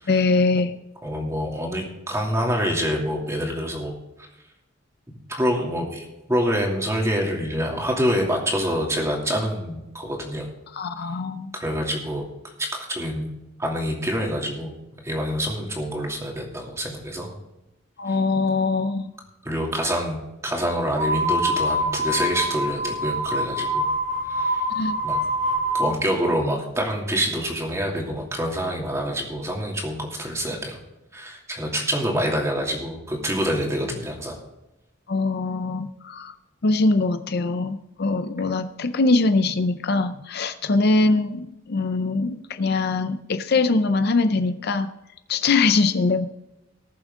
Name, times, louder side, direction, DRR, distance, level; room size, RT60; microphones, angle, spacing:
voice 1, 0.1-0.7 10.7-11.5 18.0-19.1 24.7-25.0 35.1-36.3 36.6-44.9 45.3-46.3, left 3 dB, 50° left, 9 dB, 0.5 m, -22 dB
voice 2, 1.0-3.9 5.3-10.5 11.5-12.3 12.6-13.3 13.6-14.7 15.0-17.3 18.1-18.2 19.4-20.2 20.4-23.8 24.3-24.6 25.0-25.2 25.7-30.8 31.1-34.4, equal, 15° right, -1 dB, 2.7 m, -26 dB
sound 1, 20.9-25.9, equal, 40° right, 3.5 m, -25 dB
19.5 x 7.2 x 3.7 m, 0.96 s
head